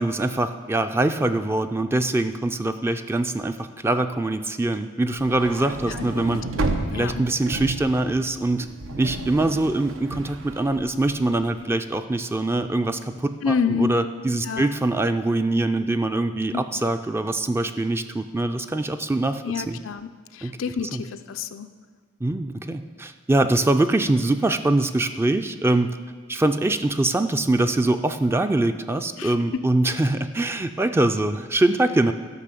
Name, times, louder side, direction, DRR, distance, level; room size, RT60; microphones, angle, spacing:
voice 1, 0.0-6.4 6.9-8.7 9.0-19.8 20.4-20.6 20.9-21.0 22.2-26.0 26.3-32.1, right 2 dB, 10° right, 8 dB, 0.3 m, -23 dB
sound 1, 5.2-11.5, right 2 dB, 90° right, 0.8 m, -32 dB
voice 2, 5.9-7.2 13.4-14.0 14.4-14.7 16.5-16.6 19.4-21.7 29.2-29.6, left 6 dB, 90° left, 9 dB, 0.5 m, -29 dB
12.0 x 5.6 x 6.8 m, 1.5 s
head